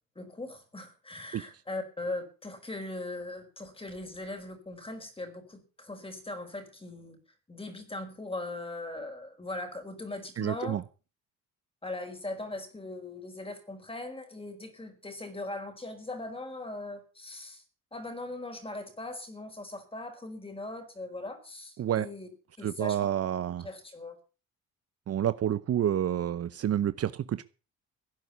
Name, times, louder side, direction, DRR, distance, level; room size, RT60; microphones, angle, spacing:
voice 1, 0.1-7.2 7.5-10.8 11.8-17.6 17.9-22.3 22.6-23.0 23.6-24.2, left 2 dB, 15° left, 4.9 m, -40 dB
voice 2, 10.4-10.8 21.8-22.1 22.6-23.7 25.1-27.4, right 10 dB, 50° right, 0.8 m, -29 dB
16.5 x 9.4 x 7.0 m
cardioid pair, 100°, 32 cm